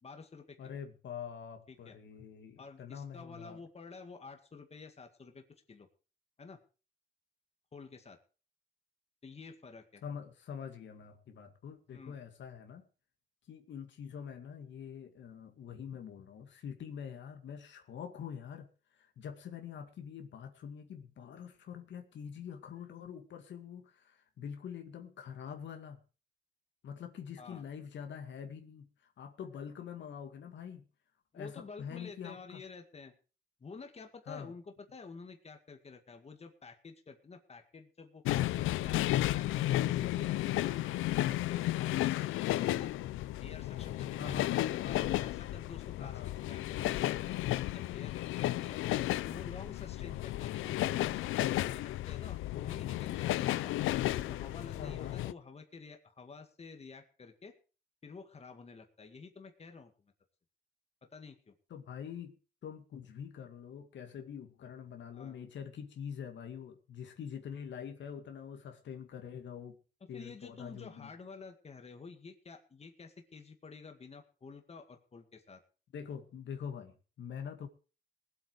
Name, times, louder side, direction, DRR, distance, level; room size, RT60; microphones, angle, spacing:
voice 1, 0.0-0.7 1.7-2.0 2.6-5.9 6.4-6.6 7.7-8.2 9.2-10.0 11.9-12.2 27.4-27.6 31.3-33.1 33.6-42.9 43.4-48.8 49.3-53.7 54.2-57.5 58.0-59.9 61.1-61.5 65.1-65.4 70.0-75.6, left 4 dB, 30° left, 5 dB, 2.1 m, -50 dB
voice 2, 0.6-3.6 10.0-12.9 13.5-18.7 18.9-26.0 26.8-28.9 29.2-30.8 31.3-32.6 34.3-34.5 44.2-44.5 44.8-45.2 46.0-46.3 54.8-55.2 61.7-62.4 62.6-69.8 70.1-71.1 75.9-77.7, left 7 dB, 65° left, 5 dB, 2.2 m, -45 dB
sound 1, 38.2-55.3, left 15 dB, 85° left, 0.6 m, -33 dB
19.0 x 8.2 x 4.9 m, 0.36 s
cardioid pair, 90°, 20 cm